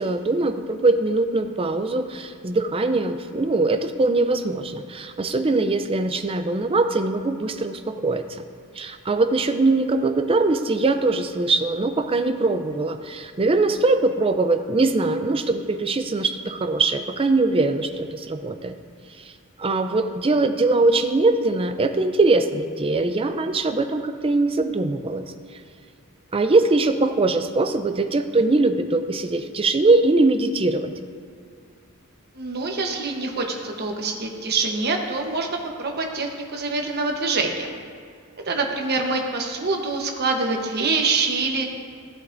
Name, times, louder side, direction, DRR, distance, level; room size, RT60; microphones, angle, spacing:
voice 1, 0.0-8.4 8.8-18.8 19.2-19.3 19.6-25.2 26.3-30.9, right 3 dB, 25° right, 8 dB, 0.5 m, -22 dB
voice 2, 32.3-37.7 38.4-41.6, right 3 dB, 50° right, 2 dB, 1.1 m, -25 dB
15.5 x 8.1 x 2.6 m, 2.3 s
head